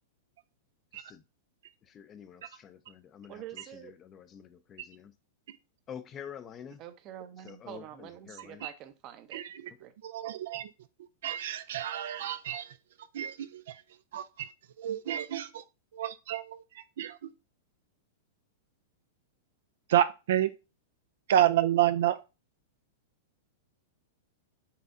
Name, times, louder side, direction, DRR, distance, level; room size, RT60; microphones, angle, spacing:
voice 1, 1.8-5.1 5.9-6.8 7.4-8.6, left 8 dB, 30° left, 0.5 m, -48 dB
voice 2, 3.3-3.9 6.8-9.9, right 11 dB, 40° right, 0.7 m, -46 dB
voice 3, 9.3-9.7 10.0-10.7 11.2-12.7 13.1-13.8 14.1-14.5 14.8-15.6 15.9-17.3 19.9-20.5 21.3-22.2, right 11 dB, 70° right, 0.4 m, -29 dB
5.7 x 3.3 x 2.6 m
hypercardioid pair, 115°, 0 cm